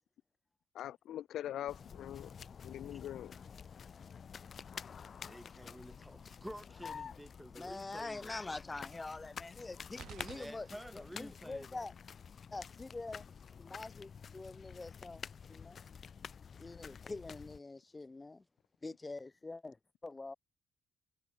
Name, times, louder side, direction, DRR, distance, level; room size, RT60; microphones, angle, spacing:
voice 1, 0.7-2.3 2.6-3.3, left 12 dB, 75° left, 0.4 m, -42 dB
sound 1, 1.7-17.6, left 6 dB, 50° left, 0.8 m, -50 dB
voice 2, 5.2-8.4 10.3-11.9, equal, ahead, 4.0 m, -50 dB
voice 3, 7.5-10.7 10.9-11.9 12.5-13.2 13.6-15.2 15.5-15.8 16.6-18.4 18.8-19.8 20.0-20.3, left 3 dB, 20° left, 0.9 m, -45 dB
sound 2, 10.0-11.3, right 11 dB, 75° right, 4.6 m, -52 dB
cardioid pair, 90°, 0 cm